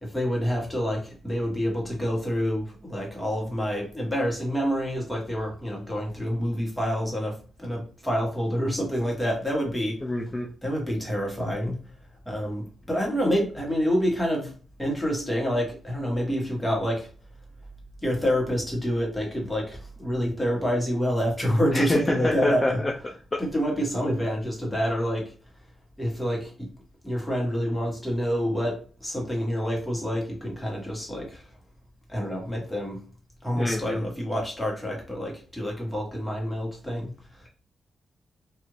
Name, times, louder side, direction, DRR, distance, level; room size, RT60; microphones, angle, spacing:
voice 1, 0.0-10.0 10.6-11.8 12.2-14.5 14.8-17.1 18.0-25.3 26.0-26.7 27.0-31.4 32.1-33.0 33.4-37.1, equal, 5° left, -2 dB, 1.4 m, -27 dB
voice 2, 10.0-10.5 21.7-22.9 33.6-34.0, left 2 dB, 25° left, -1 dB, 0.5 m, -26 dB
2.7 x 2.5 x 3.1 m, 0.38 s
cardioid pair, 70°, 0 cm